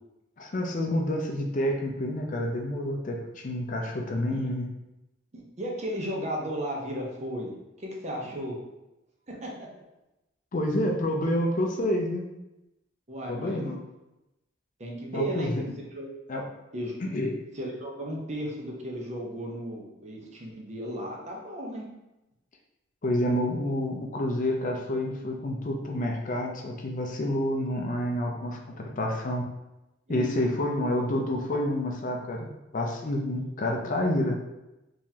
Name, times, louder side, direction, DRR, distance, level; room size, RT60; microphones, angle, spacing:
voice 1, 0.4-4.7 10.5-12.2 13.3-13.8 15.1-15.7 16.3-16.4 17.0-17.4 23.0-29.4 30.1-34.4, left 1 dB, 45° left, 1 dB, 0.5 m, -28 dB
voice 2, 5.3-8.6 9.3-9.7 13.1-13.6 14.8-15.5 15.9-16.1 16.7-16.9 17.5-21.9 28.7-28.9 30.1-30.5, equal, 35° right, -1 dB, 0.7 m, -35 dB
3.8 x 3.0 x 2.7 m, 0.95 s
head